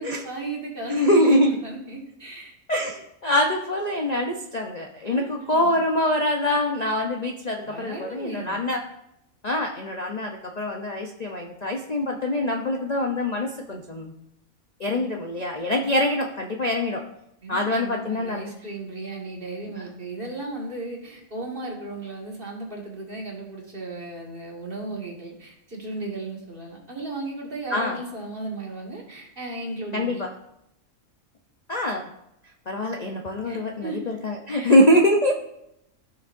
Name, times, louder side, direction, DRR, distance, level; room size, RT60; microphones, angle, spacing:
voice 1, 0.0-2.5 5.0-5.8 7.6-8.6 14.8-15.1 15.8-15.9 17.4-30.3 33.4-34.1 34.6-34.7, right 2 dB, 40° right, -2 dB, 2.0 m, -35 dB
voice 2, 0.9-1.6 2.7-8.8 9.4-14.1 14.8-17.0 17.5-18.4 27.7-28.0 29.9-30.3 31.7-32.1 32.7-35.3, left 1 dB, 40° left, 1 dB, 0.6 m, -24 dB
15.5 x 6.2 x 2.6 m, 0.81 s
omnidirectional pair, 1.5 m